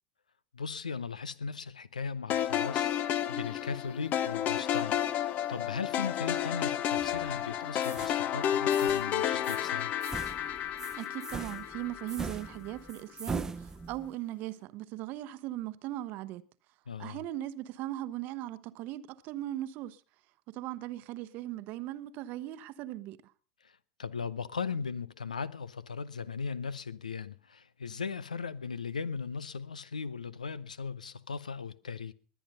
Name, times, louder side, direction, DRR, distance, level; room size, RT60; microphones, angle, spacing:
voice 1, 0.5-9.9 16.9-17.2 23.6-32.1, left 5 dB, 85° left, 0.7 m, -38 dB
sound 1, 2.3-12.6, left 10 dB, 40° left, 0.9 m, -31 dB
sound 2, 7.0-7.4 7.8-8.2 8.7-9.1 9.4-9.7 10.0-14.1, right 4 dB, 15° right, 0.8 m, -41 dB
voice 2, 11.0-16.5 17.0-20.0 20.5-23.3, right 14 dB, 50° right, 0.9 m, -39 dB
20.5 x 9.2 x 5.4 m
hypercardioid pair, 90°, 4 cm